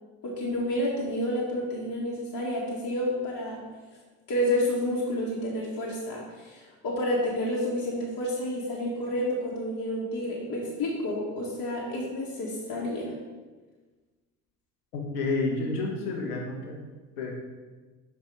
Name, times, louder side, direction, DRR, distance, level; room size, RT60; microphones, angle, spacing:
voice 1, 0.2-3.6 4.3-13.1, left 1 dB, 50° left, -5 dB, 1.7 m, -30 dB
voice 2, 14.9-16.8 17.2-17.3, left 3 dB, 80° left, 0 dB, 1.2 m, -30 dB
5.6 x 4.8 x 4.9 m, 1.3 s
hypercardioid pair, 50°, 45 cm